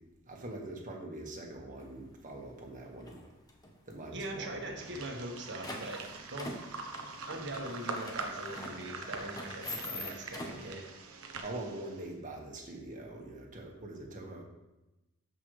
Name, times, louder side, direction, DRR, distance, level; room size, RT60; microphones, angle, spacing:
voice 1, 0.3-3.2 3.9-4.5 4.9-5.0 9.9-10.7 11.4-14.4, right 2 dB, 40° right, 0 dB, 1.6 m, -44 dB
sound 1, 1.8-1.9 2.4-2.7 3.0-3.9 4.2-4.3 4.5-4.6 5.0-10.7, left 1 dB, 20° left, 1.0 m, -44 dB
voice 2, 4.1-6.7 7.3-10.8, right 1 dB, 55° right, 2 dB, 1.5 m, -41 dB
sound 2, 4.8-12.1, right 4 dB, 90° right, 1.0 m, -43 dB
13.0 x 5.5 x 3.3 m, 0.98 s
head